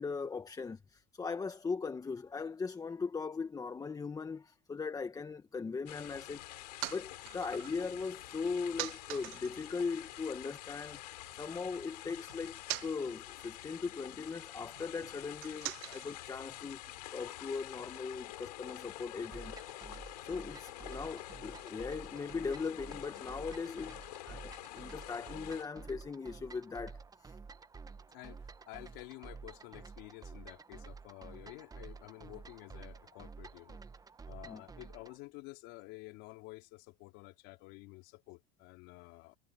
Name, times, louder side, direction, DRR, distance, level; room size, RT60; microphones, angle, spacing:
voice 1, 0.0-6.6 6.9-16.8 17.1-19.5 20.2-24.0 24.2-27.4 34.4-34.6, left 5 dB, 15° left, 1.4 m, -39 dB
sound 1, 5.9-25.6, left 16 dB, 90° left, 5.7 m, -48 dB
sound 2, 6.3-10.9 11.2-17.3, right 25 dB, 65° right, 0.8 m, -47 dB
sound 3, 19.3-35.2, right 5 dB, 20° right, 1.2 m, -51 dB
voice 2, 28.1-33.8 34.3-39.4, left 22 dB, 65° left, 4.4 m, -51 dB
supercardioid pair, 110°, 20 cm